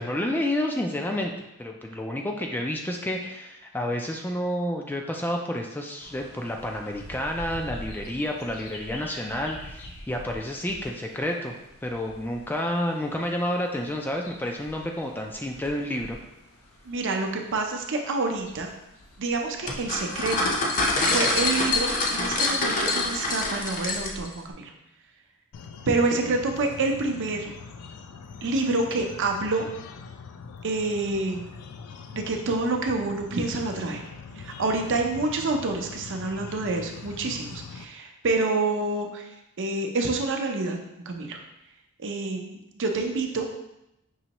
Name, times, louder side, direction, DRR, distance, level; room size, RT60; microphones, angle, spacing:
voice 1, 0.0-1.3 1.6-11.5 11.8-16.2, left 1 dB, 10° left, 1 dB, 0.3 m, -30 dB
sound 1, 6.0-21.8, left 1 dB, 65° left, 0.8 m, -47 dB
voice 2, 16.8-18.7 19.2-20.5 21.1-24.7 25.9-27.5 28.4-29.7 30.6-31.5 32.1-34.0 34.4-39.3 39.6-40.8 41.1-41.4 42.0-43.5, right 3 dB, 55° right, 3 dB, 0.6 m, -27 dB
sound 2, 19.7-24.3, left 2 dB, 35° left, 0.6 m, -25 dB
sound 3, 25.5-37.8, left 5 dB, 85° left, 0.4 m, -42 dB
5.5 x 3.0 x 2.9 m, 0.86 s
head